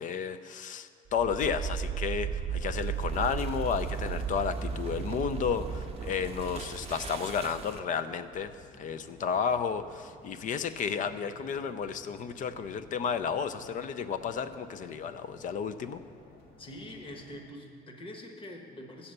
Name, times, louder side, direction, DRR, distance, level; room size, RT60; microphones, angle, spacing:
voice 1, 0.0-16.0, left 6 dB, 50° left, 12 dB, 0.4 m, -32 dB
sound 1, 1.1-8.0, right 7 dB, 35° right, 0.6 m, -35 dB
sound 2, 4.4-17.5, left 2 dB, 65° left, 1.6 m, -54 dB
voice 2, 16.6-19.1, left 1 dB, 30° left, 3 dB, 1.2 m, -45 dB
7.6 x 7.1 x 6.6 m, 2.2 s
cardioid pair, 110°, 17 cm